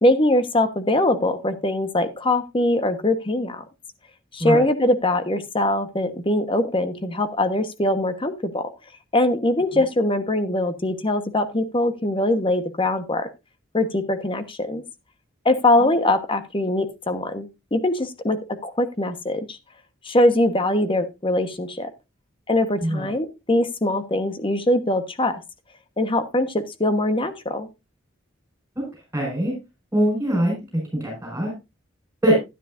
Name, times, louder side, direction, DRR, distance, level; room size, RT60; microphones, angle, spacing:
voice 1, 0.0-3.6 4.3-8.7 9.1-13.3 13.7-14.8 15.4-18.4 18.6-19.6 20.0-21.9 22.5-25.4 26.0-27.7, left 1 dB, 25° left, 9 dB, 1.1 m, -22 dB
voice 2, 29.1-29.5 29.9-30.5 31.0-31.5 32.2-32.4, right 1 dB, 10° right, -2 dB, 5.1 m, -22 dB
12.0 x 10.5 x 2.5 m, 0.24 s
head